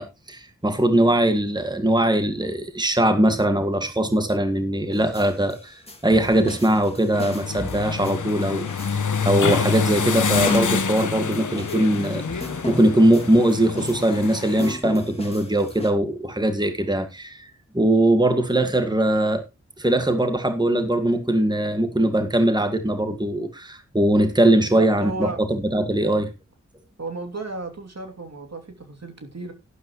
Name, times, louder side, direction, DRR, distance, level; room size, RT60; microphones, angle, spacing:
voice 1, 0.0-8.7 8.9-19.4 19.8-26.3, right 1 dB, 15° right, 1.8 m, -21 dB
sound 1, 4.9-15.9, left 2 dB, 20° left, 2.5 m, -35 dB
sound 2, 7.1-14.7, left 6 dB, 75° left, 1.3 m, -27 dB
voice 2, 24.6-25.4 27.0-29.5, right 2 dB, 55° right, 2.9 m, -34 dB
12.0 x 11.0 x 3.1 m
cardioid pair, 50°, 30 cm